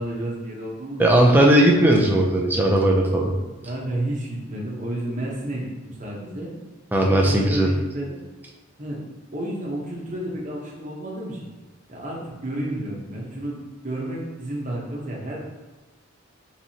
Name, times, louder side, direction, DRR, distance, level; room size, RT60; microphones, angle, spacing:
voice 1, 0.0-1.0 3.6-6.5 7.0-8.2 8.8-9.0 9.3-11.5 11.9-13.6 13.8-15.4, right 1 dB, 35° right, -3 dB, 1.0 m, -31 dB
voice 2, 1.0-3.3 6.9-7.7, right 1 dB, 10° right, -1 dB, 0.5 m, -17 dB
4.5 x 4.0 x 2.9 m, 1.2 s
head